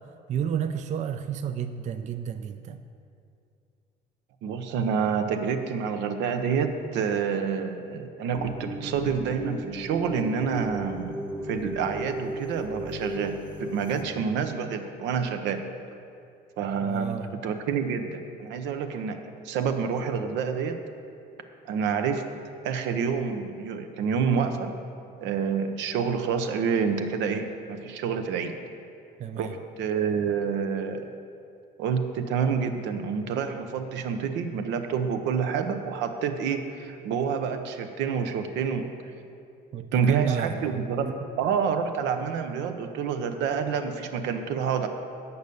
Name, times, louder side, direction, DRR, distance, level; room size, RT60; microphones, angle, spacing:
voice 1, 0.3-2.8 16.8-17.3 29.2-29.5 39.7-41.2, right 8 dB, 40° right, 9 dB, 0.4 m, -31 dB
voice 2, 4.4-11.2 11.5-15.6 16.6-20.8 21.6-22.3 22.6-24.7 25.2-28.6 29.4-31.1 31.8-38.9 39.9-41.1 41.4-44.9, right 6 dB, 80° right, 7 dB, 0.7 m, -28 dB
sound 1, 8.3-14.0, right 1 dB, 5° right, 0.7 m, -35 dB
8.0 x 5.4 x 6.8 m, 2.5 s
cardioid pair, 100°, 18 cm